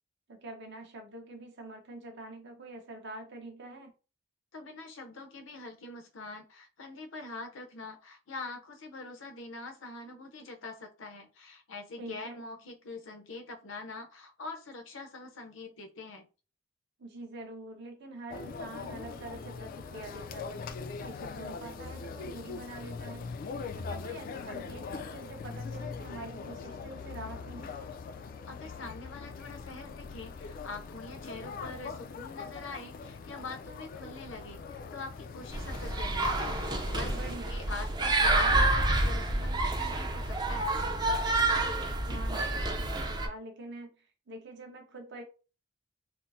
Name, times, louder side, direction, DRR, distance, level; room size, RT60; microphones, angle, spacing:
voice 1, 0.3-3.9 12.0-12.4 17.0-20.6 21.0-23.3 23.7-27.7 37.1-37.7 41.4-45.2, right 2 dB, 60° right, 3 dB, 0.9 m, -45 dB
voice 2, 4.5-16.2 28.5-37.1 37.5-40.7, left 3 dB, 75° left, 5 dB, 0.7 m, -44 dB
sound 1, 18.3-37.4, left 5 dB, 45° left, 0.3 m, -42 dB
sound 2, 35.5-43.3, right 2 dB, 20° right, 0.5 m, -28 dB
4.2 x 2.0 x 2.6 m, 0.33 s
head